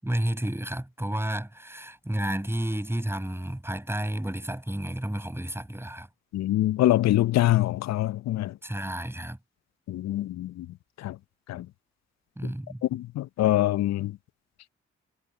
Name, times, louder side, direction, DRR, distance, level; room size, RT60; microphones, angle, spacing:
voice 1, 0.0-6.1 8.6-9.4 12.4-12.8, right 1 dB, 10° right, 6.3 m, -31 dB
voice 2, 6.3-8.5 9.9-10.7 11.0-11.2 11.5-11.7 12.9-14.1, left 14 dB, 65° left, 0.7 m, -24 dB
hypercardioid pair, 40°, 30 cm